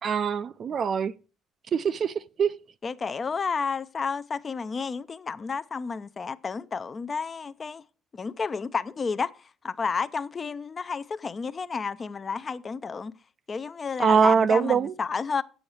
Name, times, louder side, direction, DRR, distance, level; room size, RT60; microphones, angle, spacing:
voice 1, 0.0-1.1 1.7-2.6 14.0-14.9, right 6 dB, 40° right, 0.4 m, -23 dB
voice 2, 2.8-7.8 8.1-9.3 9.6-13.1 13.5-15.4, left 5 dB, 30° left, 0.5 m, -31 dB
8.1 x 7.1 x 6.3 m
cardioid pair, 130°, 0 cm